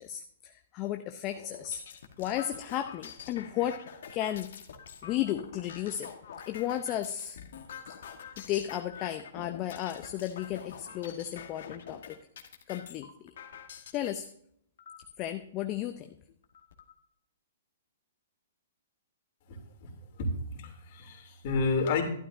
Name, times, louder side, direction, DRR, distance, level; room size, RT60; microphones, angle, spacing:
voice 1, 0.0-1.8 2.2-3.9 4.1-4.5 5.0-6.1 6.5-7.4 8.4-12.2 12.7-13.3 13.9-14.3 15.2-16.2, left 12 dB, 35° left, 7 dB, 0.6 m, -34 dB
sound 1, 1.3-14.1 14.8-15.3 15.9-16.0 16.3-16.9, left 7 dB, 65° left, 1.5 m, -46 dB
voice 2, 19.5-19.9 20.2-20.3 20.5-22.0, left 3 dB, 50° left, 1 dB, 2.9 m, -30 dB
12.0 x 11.5 x 2.7 m, 0.69 s
hypercardioid pair, 125°, 0 cm